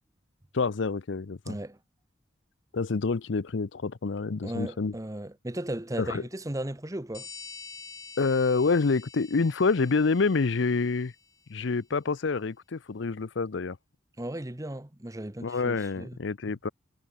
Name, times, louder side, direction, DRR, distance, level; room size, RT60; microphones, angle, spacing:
voice 1, 0.5-1.6 2.7-4.9 6.0-6.2 8.2-11.1 11.5-13.8 15.4-16.7, left 4 dB, 65° left, 0.6 m, -27 dB
voice 2, 1.5-1.8 4.4-7.3 14.2-16.2, right 1 dB, 15° right, 0.9 m, -36 dB
sound 1, 7.1-11.4, left 5 dB, 15° left, 0.7 m, -47 dB
head